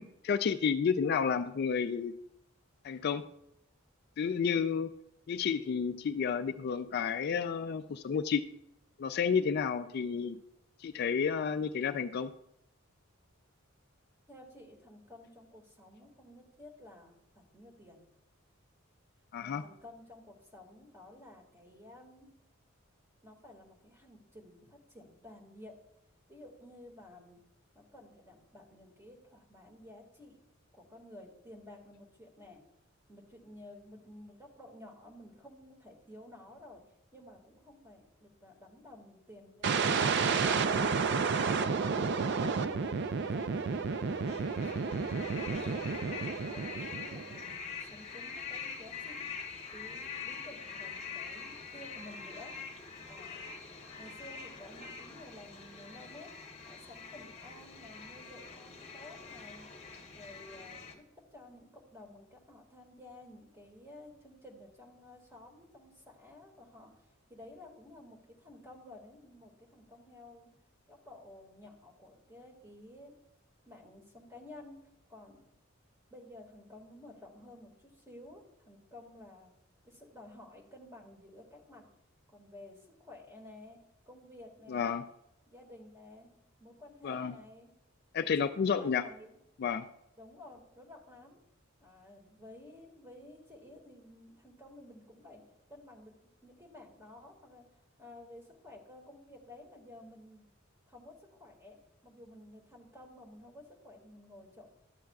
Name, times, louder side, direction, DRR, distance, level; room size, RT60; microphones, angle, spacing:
voice 1, 0.0-2.1 2.8-3.2 4.2-4.9 5.3-8.4 9.0-10.4 10.8-12.3 19.3-19.6 84.7-85.0 87.0-87.3 88.1-89.0 89.6-89.9, left 6 dB, 50° left, 10 dB, 0.3 m, -31 dB
voice 2, 14.3-18.0 19.4-22.3 23.2-25.8 26.3-27.4 27.7-30.4 30.7-32.6 33.1-36.8 37.1-40.1 40.4-41.0 41.4-41.6 42.2-43.8 44.2-44.6 44.9-45.9 46.4-49.2 49.7-52.5 53.1-53.5 54.0-56.3 56.6-59.7 60.1-67.0 67.3-70.5 70.9-73.2 73.7-74.8 75.1-75.4 76.1-79.5 79.8-81.9 82.3-85.0 85.5-86.3 86.6-87.7 88.4-89.4 90.2-91.4 91.8-95.4 95.7-96.1 96.4-97.7 98.0-100.4 100.9-101.8 102.0-104.7, left 1 dB, 15° right, 0 dB, 1.9 m, -53 dB
sound 1, 39.6-47.5, right 5 dB, 55° right, 0.4 m, -31 dB
sound 2, 43.8-60.9, left 5 dB, 30° left, 1.1 m, -45 dB
12.5 x 7.5 x 2.3 m, 0.80 s
head